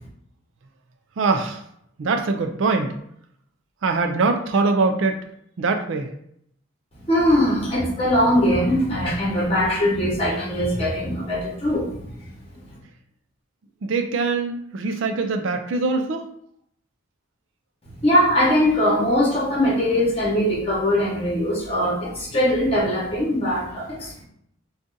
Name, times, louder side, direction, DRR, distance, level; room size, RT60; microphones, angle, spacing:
voice 1, 1.2-1.6 2.0-3.0 3.8-5.2 5.6-6.1 13.8-16.3, right 3 dB, 70° right, 6 dB, 0.4 m, -22 dB
voice 2, 7.1-12.0 18.0-24.2, equal, 30° left, -5 dB, 1.1 m, -21 dB
2.6 x 2.4 x 3.7 m, 0.70 s
head